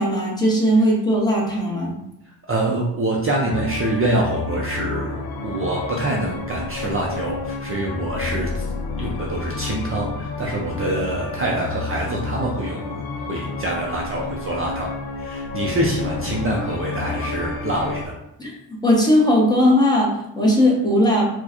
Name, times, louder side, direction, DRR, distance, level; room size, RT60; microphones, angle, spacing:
voice 1, 0.0-1.9 18.4-18.5 18.8-21.3, equal, 10° left, -3 dB, 0.7 m, -18 dB
voice 2, 2.5-8.7 9.0-13.0 13.3-14.9 15.2-18.1, right 2 dB, 30° right, -2 dB, 0.4 m, -25 dB
sound 1, 3.5-18.1, left 4 dB, 60° left, 0.5 m, -30 dB
4.4 x 2.2 x 2.9 m, 0.81 s
wide cardioid pair, 150°, 44 cm